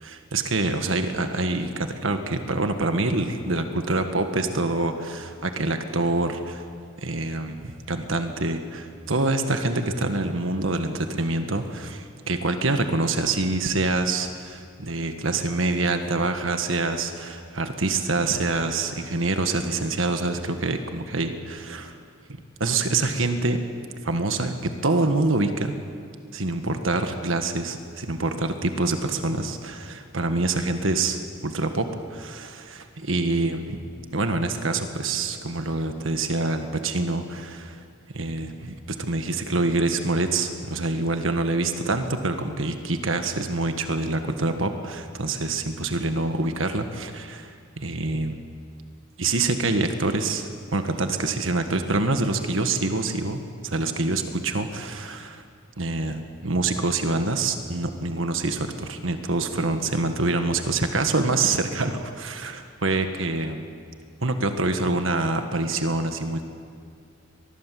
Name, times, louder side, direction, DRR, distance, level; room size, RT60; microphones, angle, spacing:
voice 1, 0.0-6.6 7.0-21.9 22.6-23.6 24.0-25.7 26.3-33.8 34.1-37.8 38.1-48.4 49.2-55.4 55.8-63.6 64.2-66.4, right 2 dB, 75° right, 7 dB, 1.6 m, -26 dB
24.0 x 20.5 x 7.7 m, 2.3 s
head